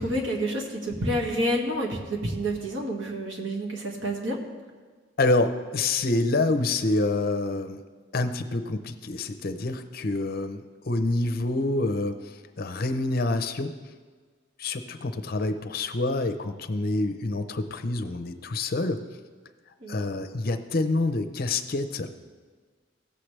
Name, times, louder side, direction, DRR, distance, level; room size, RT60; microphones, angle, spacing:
voice 1, 0.0-4.4 19.8-20.0, right 1 dB, 80° right, -1 dB, 1.8 m, -29 dB
voice 2, 5.2-7.8 8.1-13.7 14.6-19.0 19.9-22.1, left 2 dB, 50° left, 10 dB, 0.6 m, -27 dB
17.0 x 7.5 x 3.3 m, 1.5 s
head